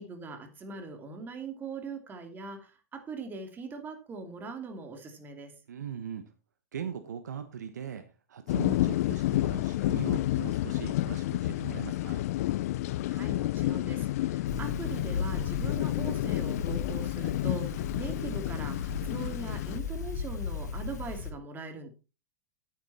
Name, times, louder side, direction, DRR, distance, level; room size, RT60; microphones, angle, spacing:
voice 1, 0.0-5.5 13.1-21.9, right 4 dB, 20° right, 6 dB, 2.7 m, -41 dB
voice 2, 5.7-6.3 6.7-12.3, right 8 dB, 85° right, 9 dB, 1.2 m, -40 dB
sound 1, 8.5-19.8, left 16 dB, 60° left, 0.4 m, -30 dB
sound 2, 14.5-21.3, left 5 dB, 85° left, 1.8 m, -36 dB
9.6 x 9.3 x 4.2 m, 0.31 s
hypercardioid pair, 125°, 9 cm